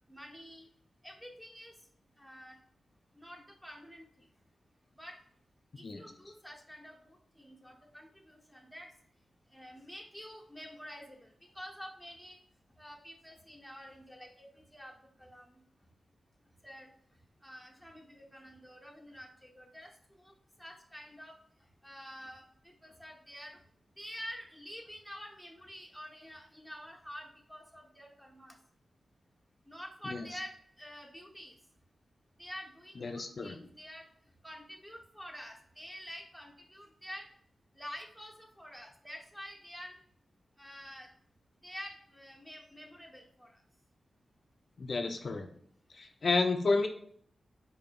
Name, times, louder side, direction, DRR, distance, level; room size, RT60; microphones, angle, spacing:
voice 1, 0.1-0.6 1.0-1.7 2.2-2.6 3.1-4.0 5.0-5.2 5.8-8.9 9.5-12.4 12.8-14.9 15.2-15.6 16.6-16.9 17.4-19.9 20.2-20.3 20.6-21.3 21.8-23.6 24.0-28.6 29.7-31.5 32.4-34.1 34.4-37.3 37.8-39.9 40.6-41.1 41.6-43.6, equal, 5° right, 0 dB, 0.8 m, -48 dB
voice 2, 33.0-33.6 44.8-45.5 45.9-46.9, left 3 dB, 55° left, 6 dB, 0.3 m, -31 dB
4.7 x 2.6 x 2.3 m, 0.62 s
cardioid pair, 55°, 0 cm